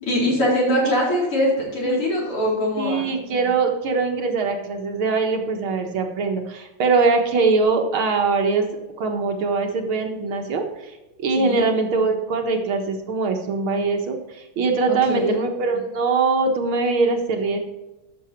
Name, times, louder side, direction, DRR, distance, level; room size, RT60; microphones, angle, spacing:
voice 1, 0.0-3.0 11.4-11.6 14.9-15.4, equal, 85° left, -5 dB, 5.2 m, -22 dB
voice 2, 2.8-8.7 9.0-10.9 11.2-17.6, right 4 dB, 70° right, 3 dB, 2.2 m, -22 dB
12.5 x 7.0 x 4.6 m, 1.0 s
omnidirectional pair, 2.4 m